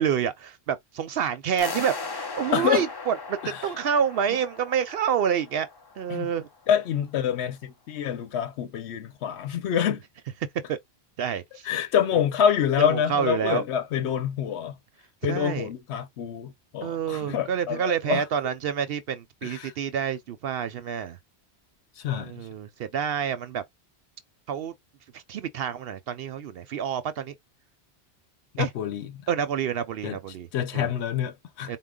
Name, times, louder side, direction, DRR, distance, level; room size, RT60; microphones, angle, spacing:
voice 1, 0.0-5.7 6.0-6.5 10.7-10.8 11.2-11.7 12.8-13.6 15.3-15.7 16.8-21.2 22.1-23.6 24.5-24.7 25.1-27.3 28.6-28.7 29.3-30.5 30.7-30.9 31.7-31.8, right 8 dB, 70° right, 0.7 m, -28 dB
sound 1, 1.6-6.5, left 4 dB, 35° left, 0.4 m, -38 dB
voice 2, 2.5-2.8 3.4-3.6 6.1-6.3 6.7-10.0 11.6-14.7 15.2-18.2 19.4-19.7 22.0-22.3 28.5-29.1 30.0-30.2 30.5-31.7, left 9 dB, 90° left, 0.9 m, -26 dB
4.5 x 2.1 x 3.6 m
omnidirectional pair, 1.1 m